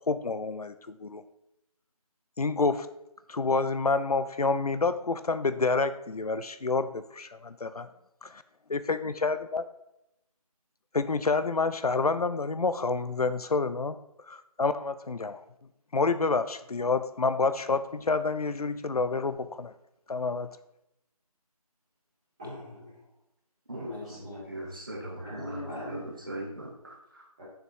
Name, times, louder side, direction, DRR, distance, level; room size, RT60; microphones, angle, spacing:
voice 1, 0.1-1.2 2.4-2.9 3.3-7.9 8.2-8.4 8.7-9.6 10.9-14.0 14.3-15.4 15.9-19.7 20.1-20.5, left 3 dB, 75° left, 12 dB, 0.6 m, -28 dB
voice 2, 22.4-23.1 23.8-24.8 25.2-26.0 27.4-27.5, left 1 dB, 10° right, -12 dB, 2.4 m, -41 dB
voice 3, 23.7-27.2, right 1 dB, 35° right, 0 dB, 1.1 m, -40 dB
6.7 x 5.9 x 4.6 m, 0.85 s
figure-of-eight pair, 180°, 19 cm